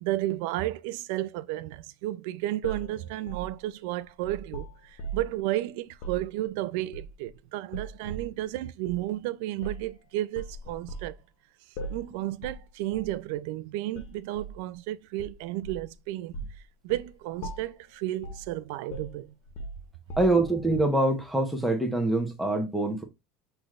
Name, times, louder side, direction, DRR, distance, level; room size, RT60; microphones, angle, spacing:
voice 1, 0.0-4.7 5.1-11.1 11.9-16.4 16.8-19.3, right 15 dB, 70° right, 0.3 m, -32 dB
sound 1, 2.6-5.4 5.9-6.3 6.9-7.3 7.7-8.3 8.9-9.0 9.6-9.9 10.3-11.1 11.8-12.1 12.4-12.6 12.9-13.2 13.9-14.6 15.2-15.9 16.3-16.6 16.9-17.1 17.4-17.8 18.2-18.5 18.9-20.6, right 3 dB, 60° left, 0.7 m, -39 dB
voice 2, 20.2-23.0, right 2 dB, ahead, 0.9 m, -25 dB
5.9 x 3.3 x 2.4 m
cardioid pair, 150°, 0 cm